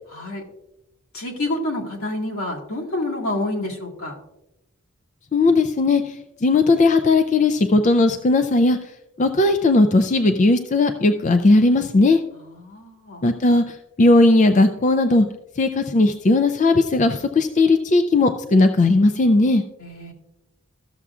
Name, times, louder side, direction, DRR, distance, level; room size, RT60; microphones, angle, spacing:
voice 1, 0.1-0.5 1.1-4.2 12.5-13.3 19.8-20.1, left 1 dB, 80° left, -2 dB, 2.0 m, -28 dB
voice 2, 5.3-6.2 6.4-8.8 9.2-12.2 13.2-15.3 15.6-19.6, left 2 dB, 35° left, 8 dB, 0.3 m, -17 dB
14.0 x 6.9 x 2.4 m, 0.90 s
head